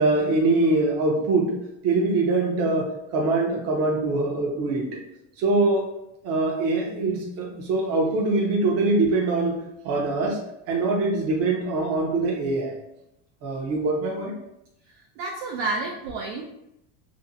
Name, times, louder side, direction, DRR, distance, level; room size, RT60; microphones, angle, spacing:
voice 1, 0.0-1.6 1.8-4.9 5.4-5.9 6.2-9.6 9.8-10.4 10.7-12.8 13.4-14.3, right 2 dB, 40° right, 0 dB, 0.7 m, -23 dB
voice 2, 15.2-16.4, right 3 dB, 85° right, -1 dB, 0.5 m, -29 dB
2.6 x 2.1 x 2.6 m, 0.82 s
cardioid pair, 150°, 37 cm